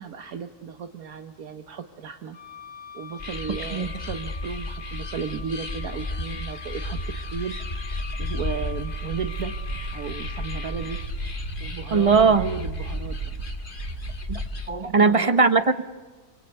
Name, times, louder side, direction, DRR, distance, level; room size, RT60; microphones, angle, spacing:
voice 1, 0.0-2.4 2.9-7.0 7.3-7.5 8.2-9.6 9.9-11.0 11.6-13.2 14.8-15.4, right 7 dB, 75° right, 7 dB, 1.4 m, -34 dB
Wind instrument woodwind instrument, 2.3-11.1, left 6 dB, 60° left, 2.1 m, -44 dB
sound 1, 3.2-14.7, left 2 dB, 35° left, 1.6 m, -34 dB
Walk footsteps, 6.8-14.5, right 3 dB, 50° right, 1.6 m, -37 dB
voice 2, 11.9-12.5 14.3-14.4 14.7-15.8, right 4 dB, 30° right, 11 dB, 0.8 m, -19 dB
26.5 x 24.5 x 8.1 m, 1.3 s
omnidirectional pair, 1.6 m